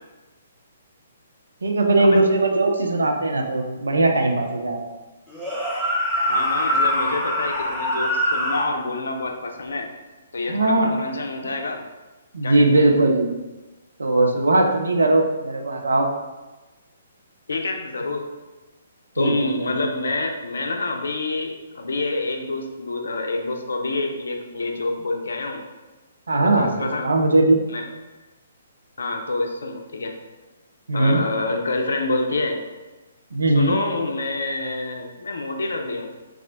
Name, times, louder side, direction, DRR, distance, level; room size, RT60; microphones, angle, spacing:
voice 1, 1.6-4.8 10.5-10.9 12.3-13.3 14.0-16.1 19.2-19.3 19.6-19.7 26.3-27.6 30.9-31.2 33.3-33.7, right 2 dB, 65° right, 2 dB, 0.5 m, -19 dB
sound 1, 5.3-8.7, equal, ahead, 0.7 m, -23 dB
voice 2, 6.3-9.9 10.3-11.8 12.4-12.6 17.5-18.3 19.1-25.6 26.4-27.1 27.7-27.8 29.0-30.2 30.9-32.6 33.5-36.2, left 2 dB, 60° left, 3 dB, 0.4 m, -27 dB
3.2 x 2.4 x 3.5 m, 1.2 s
figure-of-eight pair, 125°, 0 cm